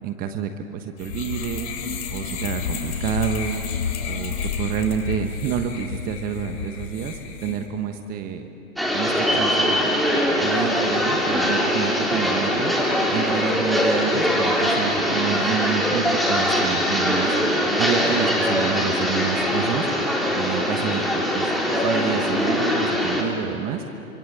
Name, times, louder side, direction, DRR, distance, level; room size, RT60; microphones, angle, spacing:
voice 1, 0.0-1.7 2.1-3.6 4.1-8.5 8.9-10.0 10.4-17.4 17.8-19.9 20.3-23.8, right 8 dB, 20° right, 7 dB, 1.2 m, -29 dB
sound 1, 1.0-7.6, left 7 dB, 50° left, 3.5 m, -30 dB
sound 2, 8.8-23.2, equal, ahead, 3.2 m, -22 dB
26.0 x 25.5 x 8.1 m, 3.0 s
hypercardioid pair, 135°, 42 cm